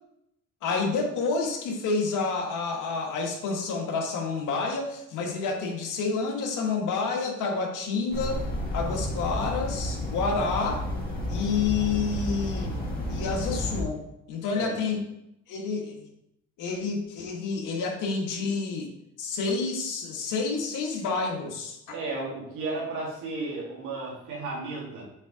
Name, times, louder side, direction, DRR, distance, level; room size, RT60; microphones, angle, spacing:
voice 1, 0.6-8.4 8.7-10.8 11.3-12.7 13.1-14.0 14.3-15.0 15.5-16.1 16.6-18.9 19.2-21.9, left 4 dB, 85° left, 1 dB, 1.6 m, -29 dB
sound 1, 8.1-13.8, left 1 dB, 30° left, 2.1 m, -31 dB
voice 2, 21.9-25.0, right 3 dB, 85° right, -4 dB, 2.7 m, -34 dB
7.4 x 3.7 x 4.9 m, 0.81 s
cardioid pair, 90°, 30 cm